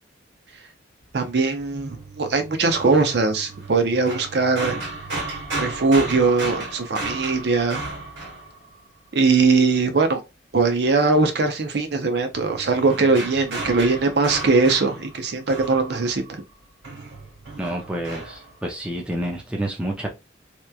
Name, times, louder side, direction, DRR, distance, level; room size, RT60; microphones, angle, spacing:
voice 1, 1.1-4.8 5.6-7.8 9.1-10.2 10.5-16.4, right 4 dB, 60° right, 0.5 m, -20 dB
sound 1, 1.9-9.1 12.3-16.5 16.8-18.6, right 2 dB, 75° right, 1.5 m, -34 dB
voice 2, 17.6-20.1, right 1 dB, 5° right, 0.4 m, -29 dB
2.9 x 2.2 x 2.3 m
head